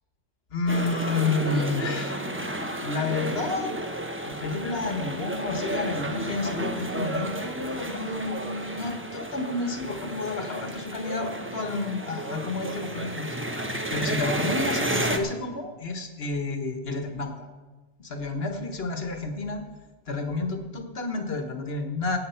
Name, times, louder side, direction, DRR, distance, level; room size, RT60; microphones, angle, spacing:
voice 1, 0.5-2.2 2.8-3.7 4.2-13.3 13.9-17.3 18.0-19.6 20.1-22.2, left 3 dB, 70° left, 5 dB, 1.7 m, -30 dB
sound 1, 0.7-15.2, right 1 dB, 15° right, 0.9 m, -32 dB
17.5 x 8.2 x 5.7 m, 1.2 s
omnidirectional pair, 1.1 m